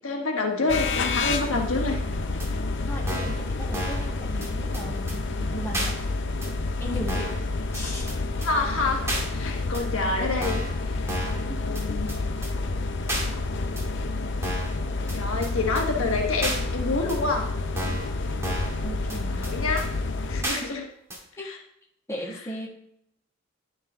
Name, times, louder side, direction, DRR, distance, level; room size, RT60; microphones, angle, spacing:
voice 1, 0.0-2.0 6.8-6.9 8.4-9.1 9.3-11.1 11.5-12.1 15.1-17.5 19.4-19.9 20.3-20.9 21.4-21.6, left 3 dB, 85° left, 1 dB, 1.3 m, -27 dB
sound 1, 0.7-20.4, left 3 dB, 60° left, 0.6 m, -29 dB
sound 2, 2.4-2.5 3.1-3.4 3.7-4.1 4.4-4.5 4.7-4.8 5.1-5.2 5.7-5.9 6.4-6.5 7.1-7.4 7.7-7.8 8.1-8.2 8.4-8.5 9.1-9.2 9.7-9.8 10.4-10.7 11.1-11.4 11.7-11.8 12.1-12.2 12.4-12.5 13.1-13.3 13.8-13.9 14.4-14.7 15.1-15.2 15.4-15.5 15.8-15.9 16.4-16.6 17.1-17.2 17.8-18.1 18.4-18.8 19.1-19.2 19.4-19.5 19.8-19.9 20.4-20.6 21.1-21.2, right 1 dB, 15° right, 2.1 m, -31 dB
voice 2, 2.8-5.9 6.8-7.3 7.7-8.2 11.4-12.0 18.8-19.6 20.6-20.7 21.4-21.5 22.1-22.7, equal, 15° left, -3 dB, 1.8 m, -37 dB
11.0 x 5.6 x 3.6 m, 0.74 s
head